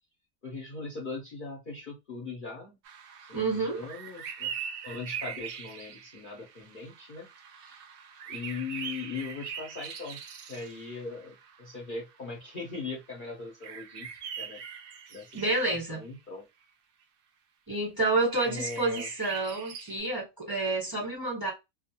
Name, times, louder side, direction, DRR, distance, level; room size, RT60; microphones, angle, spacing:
voice 1, 0.4-2.8 3.2-4.5 4.8-7.3 7.5-7.9 8.3-10.2 10.5-14.1 14.4-14.6 15.1-16.5 18.4-19.1, left 4 dB, 45° left, 0.8 m, -40 dB
sound 1, 2.8-11.8 12.1-12.2 12.5-12.7 13.6-15.9 18.3-20.0, right 8 dB, 70° right, 0.5 m, -42 dB
voice 2, 3.3-3.8 15.3-16.0 17.7-21.5, right 2 dB, 15° right, 1.1 m, -29 dB
2.4 x 2.3 x 2.8 m
omnidirectional pair, 1.5 m